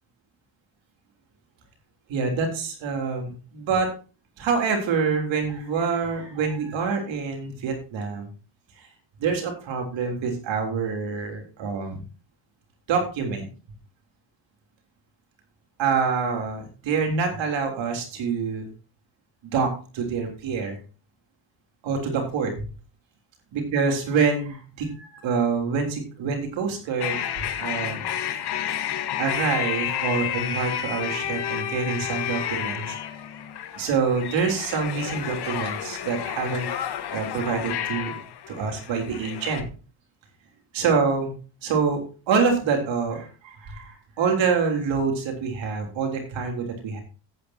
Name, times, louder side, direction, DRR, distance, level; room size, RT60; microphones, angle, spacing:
voice 1, 2.1-3.9 4.4-8.3 8.8-8.9 9.2-12.0 12.9-13.4 15.8-18.7 19.4-20.8 21.8-22.7 23.5-27.2 27.6-28.1 29.2-33.0 33.7-36.7 37.1-38.2 38.5-39.6 40.7-41.3 41.6-42.0 42.3-47.0, right 5 dB, 75° right, 3 dB, 3.5 m, -26 dB
sound 1, 27.0-39.6, left 10 dB, 60° left, 1.4 m, -31 dB
14.5 x 8.8 x 2.8 m, 0.35 s
cardioid pair, 90°, 45 cm